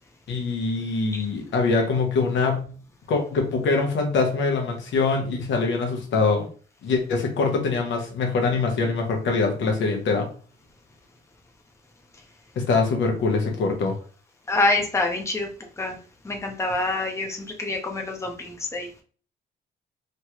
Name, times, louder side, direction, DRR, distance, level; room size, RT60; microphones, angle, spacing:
voice 1, 0.3-2.6 3.1-6.5 6.8-10.3 12.6-14.0, left 4 dB, 70° left, 2 dB, 0.9 m, -23 dB
voice 2, 14.5-15.5 15.8-16.0 16.2-19.0, left 2 dB, 15° left, 2 dB, 0.7 m, -26 dB
3.1 x 2.3 x 3.0 m, 0.41 s
cardioid pair, 90°, 20 cm